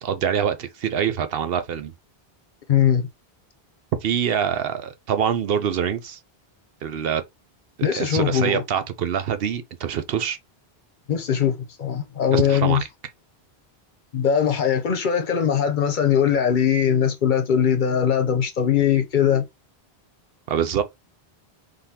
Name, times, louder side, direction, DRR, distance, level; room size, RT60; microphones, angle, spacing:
voice 1, 0.0-1.9 4.0-6.2 6.8-7.2 7.8-10.4 12.3-12.9 20.5-20.8, right 8 dB, 70° right, 0.8 m, -25 dB
voice 2, 2.7-3.1 7.8-8.6 11.1-12.8 14.1-19.4, left 8 dB, 55° left, 0.8 m, -21 dB
3.9 x 3.3 x 2.7 m
omnidirectional pair, 1.1 m